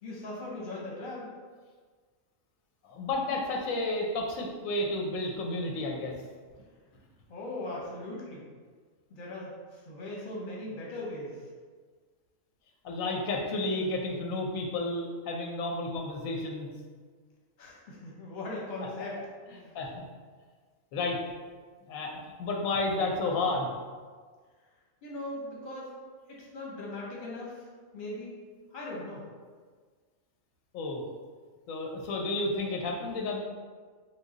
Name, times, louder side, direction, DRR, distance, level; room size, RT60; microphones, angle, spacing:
voice 1, 0.0-1.3 7.3-8.5 9.1-11.5 17.6-19.2 19.5-19.8 25.0-25.9 26.3-27.7 27.9-28.3 28.7-29.3, left 2 dB, 45° left, -3 dB, 0.8 m, -39 dB
voice 2, 2.9-6.1 12.8-16.7 19.7-20.1 20.9-21.2 21.9-23.7 30.7-31.0 31.7-33.4, left 2 dB, 90° left, 0 dB, 1.0 m, -31 dB
3.1 x 2.2 x 3.7 m, 1.5 s
omnidirectional pair, 1.4 m